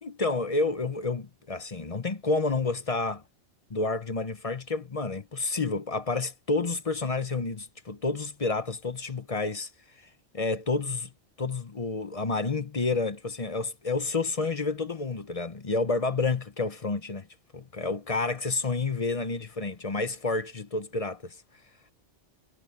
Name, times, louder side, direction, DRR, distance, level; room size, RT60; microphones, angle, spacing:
voice 1, 0.0-3.2 3.7-9.7 10.3-11.1 11.4-17.3 17.5-21.4, left 3 dB, 35° left, 0.9 m, -29 dB
omnidirectional pair, 1.2 m